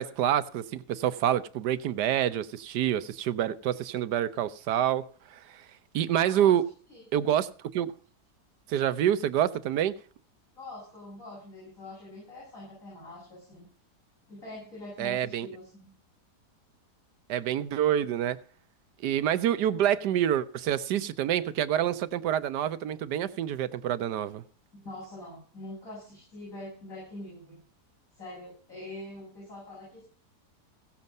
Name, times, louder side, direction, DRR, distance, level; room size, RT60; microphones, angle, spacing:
voice 1, 0.0-5.0 5.3-5.6 5.9-6.6 7.1-7.9 8.7-9.9 15.0-15.5 17.3-18.4 19.0-24.4, right 10 dB, 75° right, 1.3 m, -27 dB
voice 2, 6.2-6.5 6.9-7.0 10.5-13.7 14.3-15.9 24.7-27.6 28.1-30.0, left 1 dB, 50° left, 8.2 m, -44 dB
16.5 x 7.3 x 5.3 m
omnidirectional pair, 1.8 m